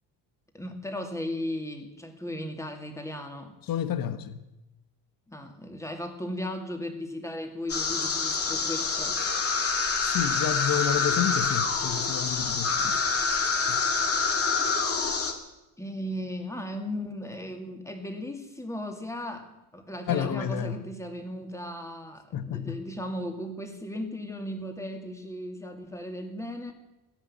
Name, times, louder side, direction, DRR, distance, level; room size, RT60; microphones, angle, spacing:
voice 1, 0.5-3.6 5.3-9.2 12.7-13.3 15.8-26.7, left 1 dB, 5° left, 4 dB, 2.4 m, -36 dB
voice 2, 3.7-4.4 10.0-13.0 13.7-13.8 20.1-20.8 22.3-22.8, left 10 dB, 55° left, 11 dB, 1.3 m, -30 dB
sound 1, 7.7-15.3, left 4 dB, 35° left, 2.3 m, -26 dB
15.5 x 10.5 x 8.7 m, 0.97 s
cardioid pair, 125°, 42 cm